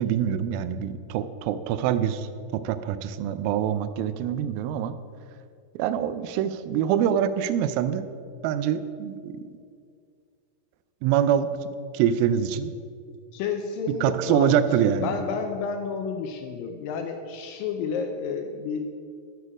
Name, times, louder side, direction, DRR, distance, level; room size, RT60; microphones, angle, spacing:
voice 1, 0.0-2.3 2.5-4.9 5.8-8.0 8.4-9.4 11.0-11.5 11.9-12.7 14.0-15.1, right 9 dB, 85° right, 12 dB, 2.1 m, -25 dB
voice 2, 13.3-14.5 14.8-18.9, left 5 dB, 85° left, 5 dB, 2.0 m, -30 dB
13.0 x 6.7 x 4.9 m, 2.3 s
omnidirectional pair, 4.7 m